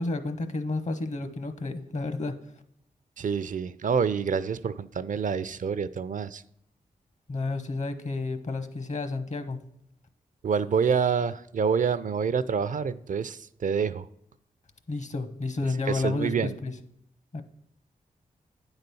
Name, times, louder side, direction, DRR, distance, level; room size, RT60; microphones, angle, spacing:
voice 1, 0.0-2.4 7.3-9.6 14.9-16.7 17.3-17.4, left 3 dB, 50° left, 11 dB, 1.0 m, -31 dB
voice 2, 3.2-6.4 10.4-14.1 15.9-16.5, right 6 dB, 55° right, 16 dB, 0.4 m, -27 dB
8.9 x 4.0 x 6.9 m, 0.73 s
supercardioid pair, 40°, 16 cm